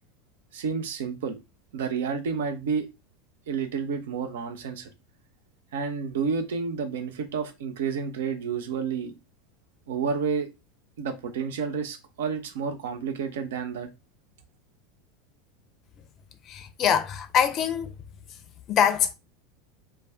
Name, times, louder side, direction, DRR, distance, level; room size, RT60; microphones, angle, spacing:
voice 1, 0.5-1.4 1.7-2.9 3.5-4.9 5.7-9.1 9.9-10.5 11.0-13.9, right 6 dB, 70° right, 0.5 m, -30 dB
voice 2, 16.4-17.9 18.3-18.4 18.7-19.1, left 8 dB, 40° left, 0.4 m, -24 dB
2.4 x 2.2 x 3.4 m
figure-of-eight pair, 80°, 0 cm